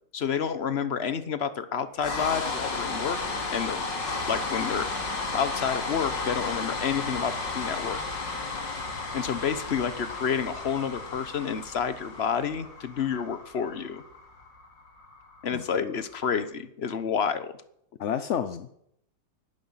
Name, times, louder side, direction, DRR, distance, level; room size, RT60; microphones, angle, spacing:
voice 1, 0.1-3.2 3.5-3.9 4.3-4.9 5.3-8.0 9.1-14.0 15.4-17.5, left 7 dB, 40° left, 12 dB, 1.1 m, -29 dB
sound 1, 2.0-16.1, left 3 dB, 90° left, 3.2 m, -33 dB
voice 2, 15.5-15.9 18.0-18.8, left 9 dB, 60° left, 11 dB, 0.8 m, -30 dB
20.5 x 12.5 x 5.7 m, 0.77 s
omnidirectional pair, 1.9 m